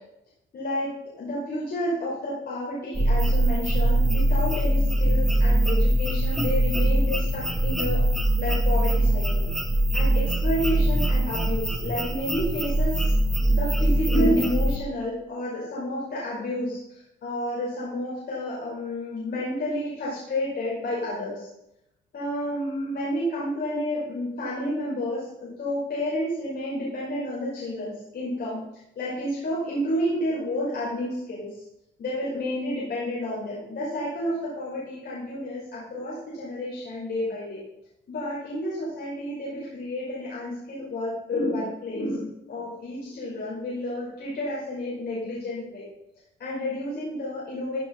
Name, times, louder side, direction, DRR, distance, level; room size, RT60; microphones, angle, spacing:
voice 1, 0.5-8.0 8.4-9.4 9.9-13.1 13.5-21.5 22.1-28.6 29.0-31.6 32.0-37.6 38.1-45.8 46.4-47.8, left 1 dB, 55° left, -7 dB, 5.8 m, -30 dB
sound 1, 2.9-14.8, right 1 dB, ahead, 2.0 m, -22 dB
15.5 x 7.1 x 5.7 m, 0.84 s
cardioid pair, 90°, 20 cm